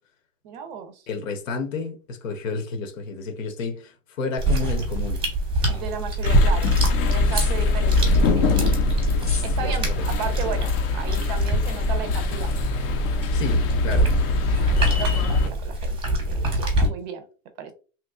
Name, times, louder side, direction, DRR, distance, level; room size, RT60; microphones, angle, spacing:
voice 1, 0.4-1.0 5.7-6.8 7.1-8.5 9.4-12.5 14.8-16.0 16.3-17.2 17.6-17.7, right 6 dB, 35° right, 0.5 m, -34 dB
voice 2, 1.1-5.2 7.7-7.8 9.6-9.9 13.3-14.1, left 4 dB, 75° left, 1.2 m, -31 dB
sound 1, 4.4-16.9, right 1 dB, 15° right, 0.8 m, -26 dB
sound 2, 6.2-15.5, left 3 dB, 45° left, 0.6 m, -22 dB
sound 3, 7.2-7.9 9.1-9.6, left 4 dB, 15° left, 0.8 m, -34 dB
3.0 x 2.3 x 3.5 m
supercardioid pair, 155°, 39 cm